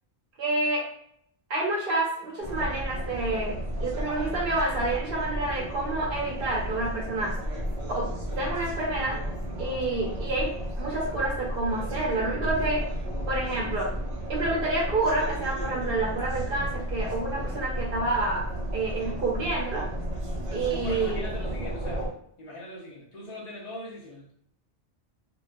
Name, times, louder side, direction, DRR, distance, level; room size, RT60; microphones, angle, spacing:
voice 1, 0.4-0.8 1.5-7.3 8.0-8.1 8.4-9.2 9.6-10.5 10.8-12.8 13.3-13.9 14.3-18.4 18.7-19.9 20.5-21.3, right 2 dB, 65° right, -2 dB, 0.9 m, -28 dB
sound 1, 2.4-22.1, right 1 dB, 40° right, 0.6 m, -33 dB
voice 2, 20.7-22.1 22.4-24.3, left 1 dB, 50° left, -5 dB, 0.6 m, -40 dB
2.3 x 2.3 x 2.4 m, 0.68 s
omnidirectional pair, 1.0 m